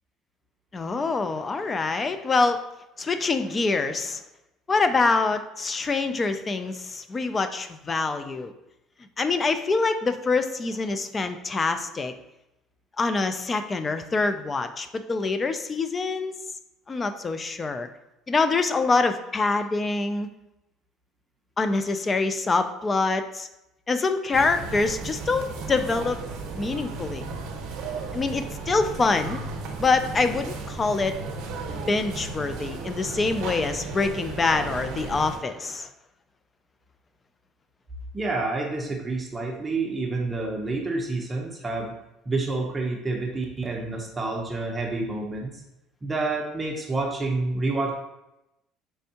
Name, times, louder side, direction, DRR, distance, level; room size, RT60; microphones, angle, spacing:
voice 1, 0.7-2.6 3.0-4.2 4.7-8.5 9.2-12.1 13.0-16.3 16.9-17.9 18.3-20.3 21.6-23.5 23.9-26.2 26.6-27.2 28.1-29.4 29.8-31.2 31.9-35.9, left 3 dB, 25° left, 9 dB, 0.3 m, -25 dB
sound 1, 24.3-35.4, right 4 dB, 70° right, 0.7 m, -35 dB
voice 2, 38.1-41.9 42.3-45.5 46.0-47.9, right 3 dB, 20° right, 0 dB, 0.6 m, -28 dB
4.4 x 3.3 x 2.8 m, 0.90 s
cardioid pair, 125°, 0 cm